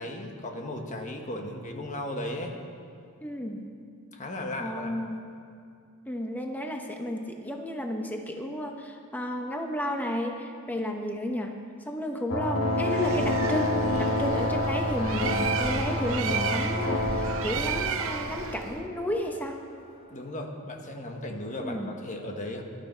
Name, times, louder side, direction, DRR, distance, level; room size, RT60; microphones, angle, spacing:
voice 1, 0.0-2.6 4.1-4.9 20.1-22.6, left 1 dB, 35° left, 3 dB, 1.4 m, -36 dB
voice 2, 3.2-3.6 4.6-5.2 6.1-11.5 11.9-19.6 21.6-21.9, equal, 10° left, 2 dB, 0.9 m, -32 dB
sound 1, 12.3-19.5, left 1 dB, 65° left, 1.4 m, -29 dB
Bird, 12.8-18.8, right 7 dB, 65° right, 0.8 m, -34 dB
17.0 x 12.5 x 4.5 m, 2.4 s
head